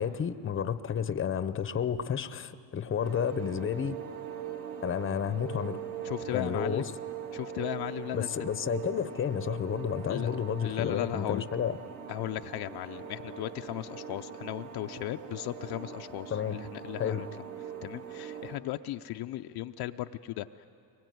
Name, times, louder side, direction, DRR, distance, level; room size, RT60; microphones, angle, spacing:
voice 1, 0.0-4.0 4.8-5.8 6.3-6.8 8.1-11.8 16.3-16.6 17.0-17.3, left 8 dB, 25° left, 13 dB, 0.8 m, -31 dB
sound 1, 3.0-18.6, right 8 dB, 55° right, 2.4 m, -41 dB
voice 2, 6.0-6.9 7.3-8.3 10.1-10.3 10.6-11.4 12.1-17.3 17.8-20.7, left 15 dB, 55° left, 7 dB, 0.6 m, -36 dB
24.0 x 21.5 x 9.3 m, 2.6 s
cardioid pair, 120°, 46 cm